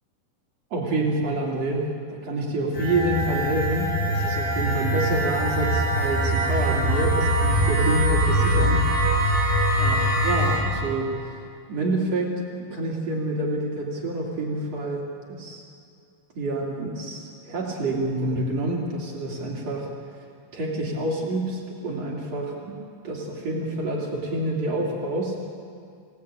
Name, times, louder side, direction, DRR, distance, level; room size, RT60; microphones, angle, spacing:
voice 1, 0.7-8.9 9.3-11.4 11.7-15.6 16.4-19.9 20.5-22.8 23.0-25.4, right 2 dB, 50° right, -2 dB, 3.6 m, -28 dB
sound 1, 2.7-10.6, equal, 60° left, 6.9 m, -22 dB
26.0 x 18.5 x 8.8 m, 2.4 s
omnidirectional pair, 4.0 m